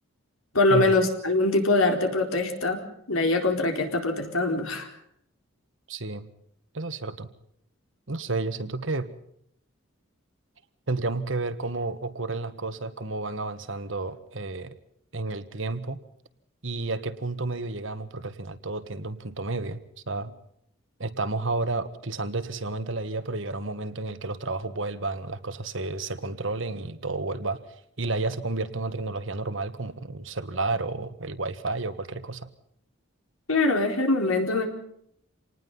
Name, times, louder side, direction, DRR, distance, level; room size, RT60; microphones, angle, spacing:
voice 1, 0.5-2.8 3.1-4.9 33.5-34.7, left 2 dB, 80° left, 4 dB, 4.4 m, -23 dB
voice 2, 5.9-6.3 6.7-7.3 8.1-9.1 10.9-14.8 15.1-16.0 16.6-19.8 20.1-20.3 21.0-27.6 28.0-32.5, right 3 dB, 65° right, 11 dB, 1.6 m, -31 dB
27.0 x 19.5 x 5.6 m, 0.71 s
head